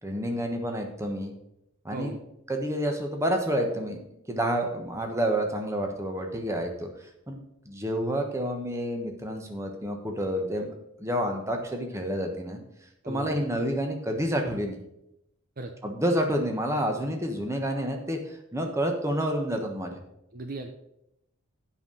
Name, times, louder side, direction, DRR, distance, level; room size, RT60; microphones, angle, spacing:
voice 1, 0.0-1.3 1.8-2.2 2.5-4.0 4.3-6.9 7.3-7.4 7.7-10.7 11.0-12.6 13.1-14.8 15.8-19.9, equal, 15° right, 3 dB, 1.2 m, -29 dB
voice 2, 13.0-13.4 15.6-15.7 20.3-20.7, right 2 dB, 45° right, 6 dB, 0.6 m, -37 dB
8.1 x 5.7 x 6.5 m, 0.83 s
head